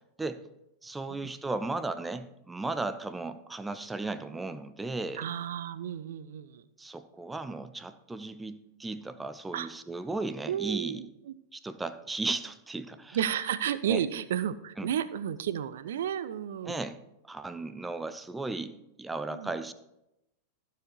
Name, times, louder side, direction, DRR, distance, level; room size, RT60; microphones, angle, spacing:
voice 1, 0.8-5.3 6.8-11.0 11.5-13.2 13.9-14.0 14.8-14.9 16.6-19.7, right 3 dB, 10° right, 11 dB, 0.6 m, -35 dB
voice 2, 5.2-6.6 9.5-9.7 10.5-11.3 13.1-16.8 19.3-19.5, right 9 dB, 60° right, 14 dB, 0.5 m, -32 dB
14.5 x 4.9 x 4.6 m, 0.88 s
figure-of-eight pair, 90°, 0 cm